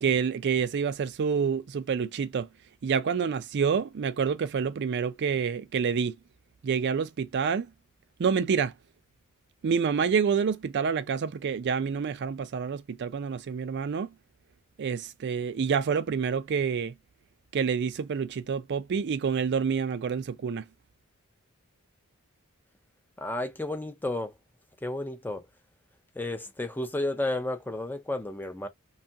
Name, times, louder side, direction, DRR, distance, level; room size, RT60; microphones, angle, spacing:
voice 1, 0.0-2.5 2.8-6.1 6.6-7.7 8.2-8.7 9.6-14.1 14.8-16.9 17.5-20.6, right 6 dB, 50° right, 0.4 m, -28 dB
voice 2, 23.2-24.3 24.8-25.4 26.2-28.7, left 2 dB, 10° left, 0.4 m, -32 dB
2.7 x 2.3 x 2.6 m
head